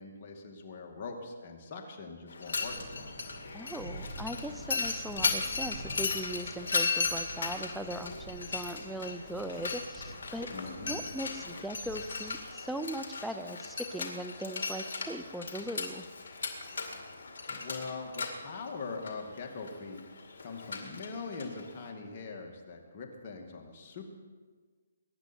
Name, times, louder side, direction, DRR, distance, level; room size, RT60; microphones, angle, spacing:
voice 1, 0.0-3.1 10.5-11.0 17.5-20.0 20.4-24.0, left 4 dB, 35° left, 1 dB, 2.3 m, -42 dB
Mechanisms, 2.3-21.9, left 4 dB, 65° left, 2.2 m, -37 dB
sound 1, 2.6-12.4, right 1 dB, 35° right, 4.1 m, -47 dB
voice 2, 3.5-10.5 10.8-16.1, right 1 dB, ahead, 8 dB, 0.6 m, -39 dB
22.5 x 10.5 x 4.5 m, 1.5 s
hypercardioid pair, 155°, 0 cm